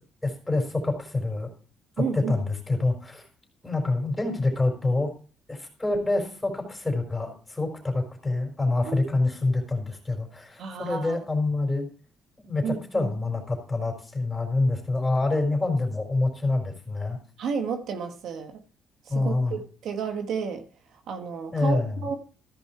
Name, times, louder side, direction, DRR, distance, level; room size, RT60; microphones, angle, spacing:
voice 1, 0.2-1.5 2.0-3.3 3.6-5.1 5.5-11.9 12.4-17.2 19.1-19.6 21.5-21.9, left 2 dB, 10° left, 1 dB, 4.3 m, -26 dB
voice 2, 2.0-2.4 8.9-9.0 10.6-11.2 12.6-13.1 17.4-18.6 19.0-20.6 21.1-22.2, right 6 dB, 70° right, 6 dB, 1.3 m, -31 dB
14.5 x 5.5 x 4.4 m, 0.40 s
cardioid pair, 125°, 0 cm